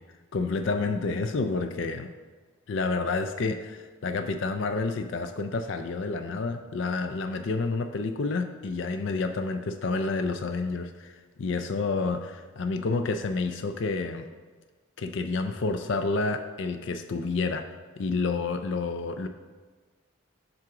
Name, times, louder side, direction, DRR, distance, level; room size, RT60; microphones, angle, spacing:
voice 1, 0.3-2.1 2.7-14.3 15.0-17.7 18.0-19.3, left 3 dB, 60° left, 7 dB, 0.4 m, -29 dB
7.7 x 3.7 x 5.9 m, 1.4 s
head